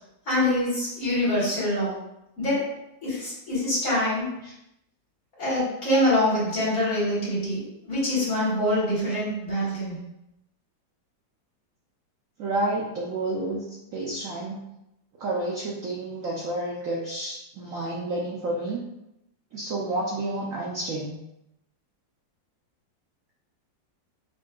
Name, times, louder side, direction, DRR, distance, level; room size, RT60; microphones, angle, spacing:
voice 1, 0.3-1.9 2.4-2.7 3.0-4.3 5.4-10.0, left 1 dB, 50° left, -8 dB, 1.9 m, -25 dB
voice 2, 12.4-13.6 13.9-14.6 15.2-18.8 19.5-21.1, right 2 dB, 70° right, -3 dB, 0.8 m, -30 dB
5.4 x 2.5 x 2.3 m, 0.86 s
omnidirectional pair, 2.0 m